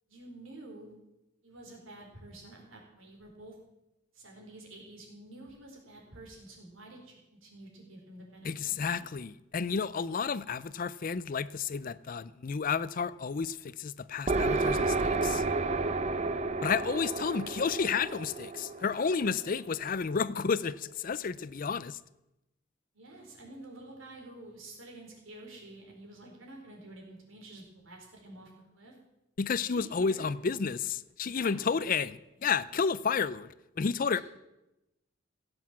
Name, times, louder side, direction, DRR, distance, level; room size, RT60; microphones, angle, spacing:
voice 1, 0.1-0.9 1.4-3.6 4.1-9.1 22.9-29.0 29.6-30.3 31.2-31.9 34.1-34.2, right 2 dB, 80° right, 4.3 m, -49 dB
voice 2, 8.4-15.4 16.6-22.0 29.4-32.1 32.4-34.2, left 5 dB, 45° left, 0.4 m, -31 dB
sound 1, 14.3-19.9, right 3 dB, 35° right, 0.7 m, -31 dB
16.5 x 8.0 x 7.3 m
head